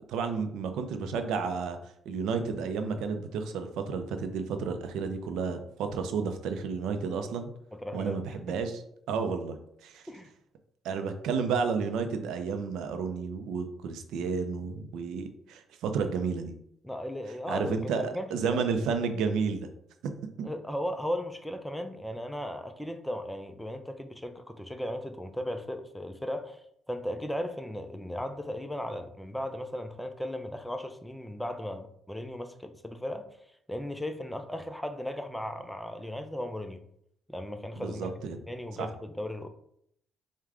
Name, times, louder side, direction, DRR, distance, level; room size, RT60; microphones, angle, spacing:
voice 1, 0.1-1.8 2.1-7.5 7.9-8.8 9.1-9.6 9.8-10.1 10.8-16.5 17.5-19.7 20.4-20.5 37.8-38.4 38.8-38.9, right 5 dB, 85° right, 0.4 m, -31 dB
voice 2, 7.7-8.2 8.5-8.6 10.1-10.3 16.8-18.6 20.4-26.6 26.9-33.3 33.7-36.8 37.3-38.1 38.5-39.5, left 1 dB, 5° left, 0.4 m, -36 dB
4.7 x 2.2 x 3.6 m
cardioid pair, 90°, 0 cm